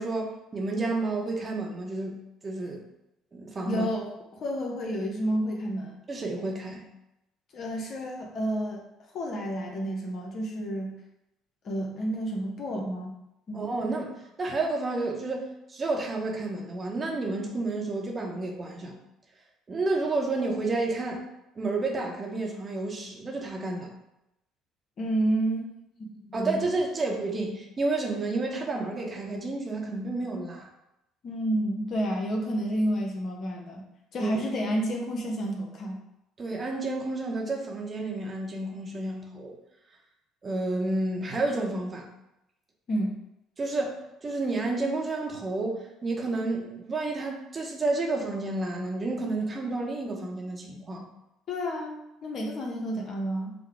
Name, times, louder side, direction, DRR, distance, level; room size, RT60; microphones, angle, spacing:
voice 1, 0.0-2.2 2.4-2.9 3.3-3.9 6.1-6.8 13.5-18.9 19.7-21.2 21.6-23.9 26.3-30.7 34.2-34.4 36.4-39.6 40.4-42.1 43.6-51.1, right 2 dB, 35° right, 0 dB, 0.9 m, -30 dB
voice 2, 3.7-6.0 7.5-8.8 9.1-11.0 11.6-13.2 13.5-13.7 25.0-25.6 26.0-26.6 31.2-33.8 34.1-36.0 42.9-43.1 51.5-53.5, right 1 dB, 55° left, 0 dB, 0.9 m, -30 dB
5.4 x 2.2 x 3.3 m, 0.87 s
hypercardioid pair, 60°, 0 cm